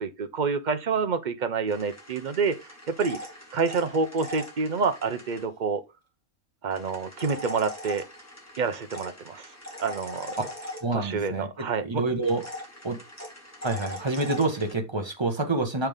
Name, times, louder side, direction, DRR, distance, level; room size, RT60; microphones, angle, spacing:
voice 1, 0.0-3.2 3.5-5.8 6.6-8.1 8.6-9.5 9.8-10.4 10.9-12.0, right 5 dB, 45° right, 0.6 m, -28 dB
sound 1, 1.7-5.4 6.7-11.3 12.2-14.7, left 1 dB, 10° left, 2.0 m, -41 dB
voice 2, 10.8-11.5 11.8-12.4 12.8-13.0 13.6-15.9, right 2 dB, 20° right, 1.1 m, -27 dB
7.1 x 5.7 x 3.5 m
omnidirectional pair, 1.4 m